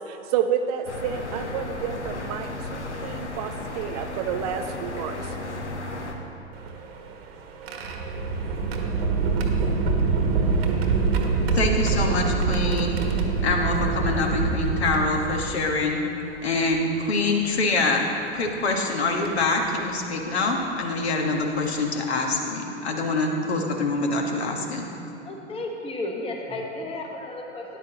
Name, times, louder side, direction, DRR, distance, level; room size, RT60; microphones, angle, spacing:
voice 1, 0.0-5.3, right 8 dB, 35° right, 7 dB, 0.5 m, -30 dB
sound 1, 0.9-6.1, left 2 dB, 80° left, 1.1 m, -34 dB
sound 2, 6.5-15.8 16.7-16.8 18.3-18.5 19.2-19.4 21.0-21.1 21.6-21.8, right 4 dB, 60° right, 1.3 m, -25 dB
voice 2, 11.5-13.0 13.4-16.0 16.4-18.0 18.3-24.9, left 3 dB, 65° left, 2 dB, 1.4 m, -25 dB
voice 3, 25.2-27.8, left 2 dB, 15° left, 1 dB, 1.2 m, -33 dB
13.0 x 10.5 x 2.9 m, 2.9 s
figure-of-eight pair, 100°, 34 cm